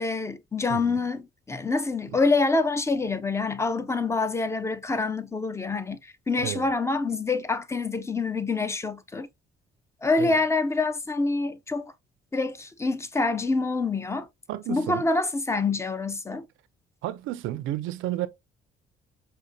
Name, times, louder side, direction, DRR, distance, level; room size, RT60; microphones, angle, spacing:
voice 1, 0.0-9.3 10.0-11.9 12.3-14.3 14.7-16.5, left 3 dB, 15° left, 0.4 m, -26 dB
voice 2, 14.5-15.0 17.0-18.3, right 14 dB, 90° right, 0.4 m, -31 dB
5.1 x 2.1 x 2.6 m
cardioid pair, 90°, 20 cm